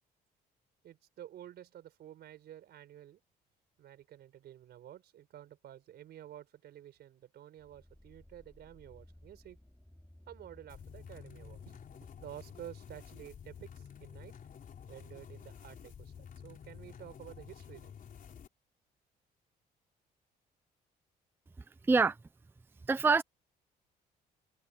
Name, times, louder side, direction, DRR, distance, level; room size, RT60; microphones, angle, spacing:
voice 1, 0.8-3.2 3.8-9.6 10.3-11.8 12.2-14.3 14.9-17.9, right 11 dB, 70° right, 4.7 m, -51 dB
sound 1, 7.6-12.6, left 1 dB, 5° left, 2.8 m, -59 dB
sound 2, 10.7-18.5, left 7 dB, 55° left, 3.9 m, -51 dB
voice 2, 22.9-23.2, right 4 dB, 10° right, 0.5 m, -25 dB
cardioid pair, 90°, 17 cm